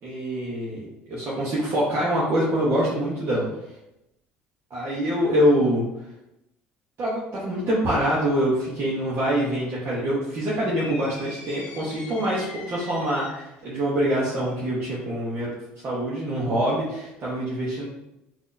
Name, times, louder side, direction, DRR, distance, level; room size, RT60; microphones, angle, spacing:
voice 1, 0.0-3.4 4.7-5.8 7.0-15.5 15.8-17.9, equal, 50° right, -7 dB, 1.0 m, -25 dB
sound 1, 10.8-13.6, left 3 dB, 85° left, 0.8 m, -42 dB
3.7 x 2.7 x 2.6 m, 0.89 s
supercardioid pair, 75°, 5 cm